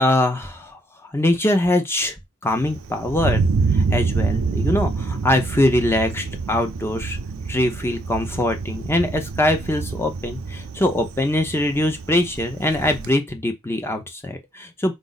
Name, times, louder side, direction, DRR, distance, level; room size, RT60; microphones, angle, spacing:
voice 1, 0.0-2.2 2.4-3.4 3.7-7.2 7.5-14.9, left 1 dB, 10° left, 0.7 m, -22 dB
Thunder, 2.5-13.1, right 4 dB, 85° right, 0.5 m, -26 dB
5.0 x 2.5 x 4.0 m
head